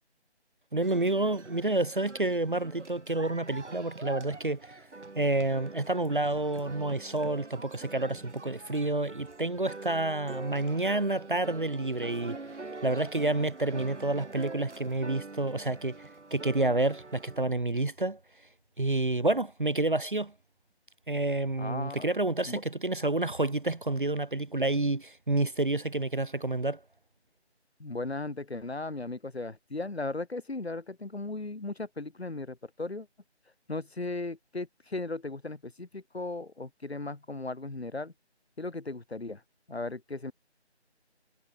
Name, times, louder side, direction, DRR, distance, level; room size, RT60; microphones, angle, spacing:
voice 1, 0.7-4.8 5.2-12.4 12.8-16.0 16.3-18.2 18.8-20.3 21.1-26.8, right 2 dB, 50° right, 0.6 m, -29 dB
sound 1, 0.8-17.5, right 3 dB, 85° right, 2.5 m, -45 dB
voice 2, 21.6-22.1 22.5-22.6 27.8-33.1 33.7-38.1 38.6-39.4 39.7-40.3, left 2 dB, 65° left, 3.5 m, -37 dB
figure-of-eight pair, 180°, 34 cm